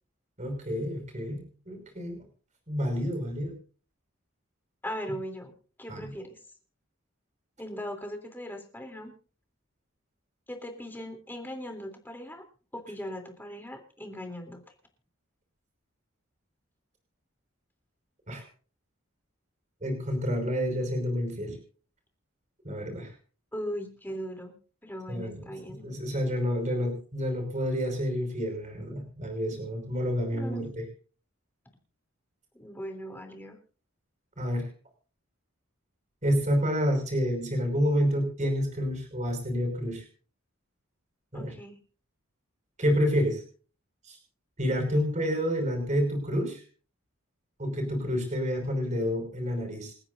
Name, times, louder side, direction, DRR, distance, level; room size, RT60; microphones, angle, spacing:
voice 1, 0.4-2.2 2.7-3.5 5.9-6.1 18.3-18.4 19.8-21.6 22.6-23.1 25.1-25.4 25.8-30.9 34.4-34.7 36.2-40.0 41.3-41.5 42.8-43.4 44.1-44.2 44.6-46.6 47.6-49.9, equal, 35° right, 4 dB, 5.4 m, -29 dB
voice 2, 4.8-5.5 5.8-6.4 7.6-9.1 10.5-12.4 12.7-14.6 23.5-24.6 24.8-25.9 30.3-30.6 32.6-33.6 41.3-41.8, equal, 10° left, 3 dB, 3.1 m, -39 dB
29.0 x 10.0 x 2.6 m, 0.38 s
head